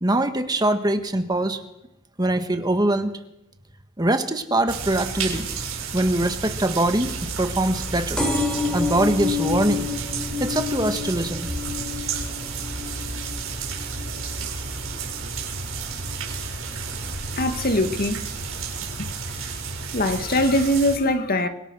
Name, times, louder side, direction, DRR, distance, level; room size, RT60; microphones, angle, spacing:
voice 1, 0.0-1.6 2.2-3.1 4.0-5.5 5.9-8.2 8.7-9.9 10.4-11.5, right 1 dB, 20° right, 1.8 m, -23 dB
sound 1, 4.7-21.0, right 4 dB, 85° right, 6.4 m, -31 dB
sound 2, 8.2-15.4 15.9-16.3 17.2-17.3 17.5-17.6 17.8-17.9, left 4 dB, 5° left, 6.8 m, -29 dB
voice 2, 17.4-18.2 19.0-19.1 19.4-19.5 19.9-21.5, left 1 dB, 45° left, 2.1 m, -22 dB
29.0 x 24.5 x 6.4 m
head